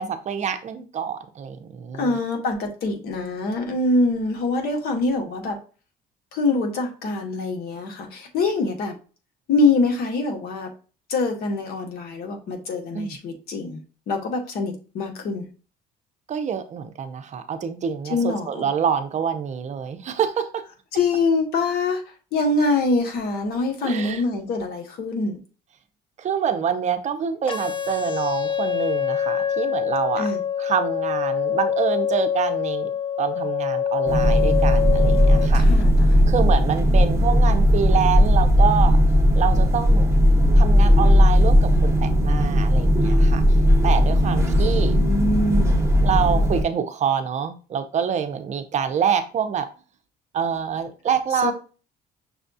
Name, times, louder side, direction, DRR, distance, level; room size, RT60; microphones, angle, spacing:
voice 1, 0.0-2.2 12.9-13.2 16.3-20.7 23.8-24.2 26.2-30.3 30.6-32.9 33.2-35.6 36.3-39.0 39.4-40.1 40.5-43.4 43.8-45.0 46.0-49.7 50.3-51.5, right 7 dB, 45° right, 9 dB, 0.6 m, -26 dB
voice 2, 1.9-5.6 6.3-9.0 9.5-10.7 11.1-13.8 14.1-15.5 18.1-18.6 20.9-22.0 22.3-25.4 30.2-30.4 35.5-36.0 44.3-45.8 51.4-51.5, left 3 dB, 70° left, 3 dB, 1.1 m, -24 dB
sound 1, 27.5-35.5, left 8 dB, 30° left, 0.7 m, -25 dB
sound 2, 34.1-46.6, equal, 15° right, 1.1 m, -17 dB
6.1 x 2.3 x 2.6 m, 0.36 s
cardioid pair, 110°, 17 cm